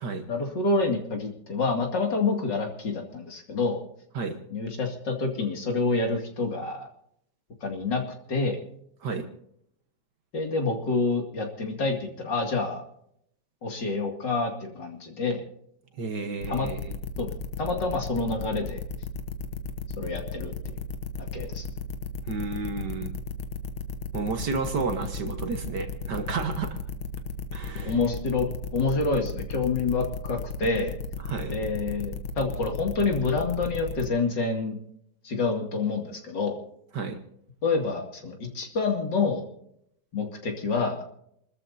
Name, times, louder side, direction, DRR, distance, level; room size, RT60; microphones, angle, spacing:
voice 1, 0.3-3.8 4.5-6.9 7.6-8.0 8.3-8.6 10.3-12.8 13.6-15.4 16.5-16.7 17.2-17.3 17.6-18.8 20.0-20.8 21.2-21.7 27.8-28.5 28.7-31.0 31.5-34.8 35.2-36.6 37.6-39.4 40.1-41.0, left 3 dB, 55° left, 2 dB, 3.0 m, -27 dB
voice 2, 16.0-16.9 22.2-23.1 24.1-26.8 27.5-27.9 31.2-31.5 36.9-37.2, right 4 dB, 55° right, 6 dB, 1.8 m, -31 dB
sound 1, 16.4-34.1, left 5 dB, 75° left, 2.0 m, -34 dB
28.5 x 13.5 x 2.7 m, 0.71 s
omnidirectional pair, 2.3 m